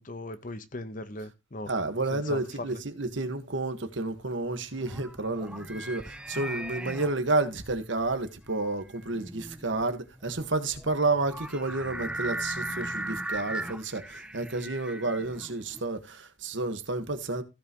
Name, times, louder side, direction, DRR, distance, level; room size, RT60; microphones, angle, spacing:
voice 1, 0.0-1.7 2.1-2.8, left 2 dB, 40° left, 1.1 m, -39 dB
voice 2, 1.7-17.4, right 2 dB, 70° right, 1.6 m, -30 dB
sound 1, 4.4-15.8, right 1 dB, 5° right, 0.6 m, -38 dB
15.5 x 5.7 x 3.1 m
head